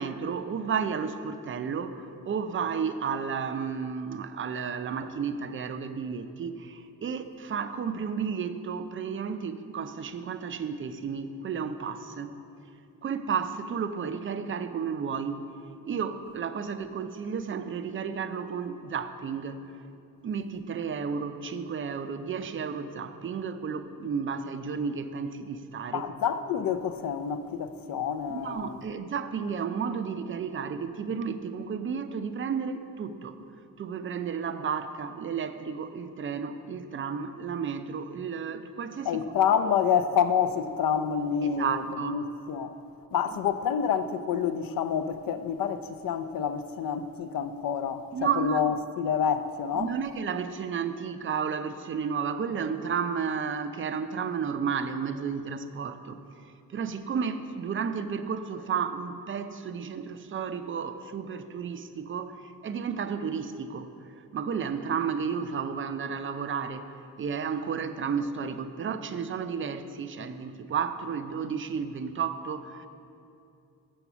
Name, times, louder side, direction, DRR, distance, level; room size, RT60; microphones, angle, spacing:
voice 1, 0.0-12.4 13.0-15.4 15.9-19.7 20.2-26.0 28.3-33.4 33.8-39.2 41.4-42.2 48.1-48.6 49.7-56.2 56.7-63.9 64.3-66.9 67.2-72.9, right 6 dB, 35° right, 0.4 m, -32 dB
voice 2, 25.9-28.8 39.1-42.7 43.1-49.9, left 7 dB, 65° left, 0.5 m, -28 dB
7.0 x 6.9 x 6.0 m
cardioid pair, 115°, 36 cm